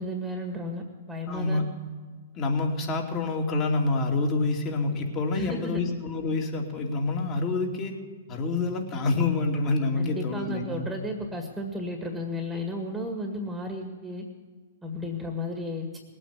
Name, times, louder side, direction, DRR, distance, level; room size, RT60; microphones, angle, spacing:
voice 1, 0.0-1.6 5.3-5.8 10.0-14.2 14.8-16.0, left 1 dB, 10° right, 3 dB, 1.9 m, -33 dB
voice 2, 1.3-1.6 2.3-8.0 8.3-10.9, left 3 dB, 30° left, 1 dB, 2.9 m, -27 dB
19.0 x 9.0 x 8.3 m, 1.5 s
hypercardioid pair, 120°, 0 cm